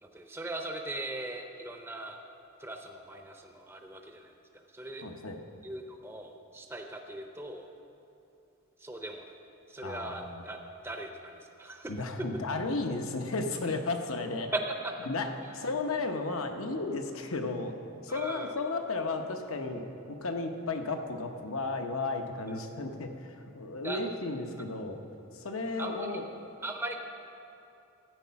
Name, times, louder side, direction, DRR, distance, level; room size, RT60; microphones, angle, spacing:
voice 1, 0.0-2.2 2.6-5.0 5.6-7.7 8.8-9.3 9.7-10.6 10.8-12.0 14.5-14.9 18.1-18.5 22.5-22.6 23.8-24.0 25.8-26.1 26.6-27.0, right 2 dB, 10° right, 3 dB, 0.5 m, -39 dB
voice 2, 5.0-5.4 9.8-10.4 11.9-14.5 15.1-15.3 15.5-17.7 18.0-25.0 25.3-26.2, left 3 dB, 80° left, 5 dB, 0.9 m, -34 dB
12.5 x 8.4 x 5.8 m, 2.8 s
head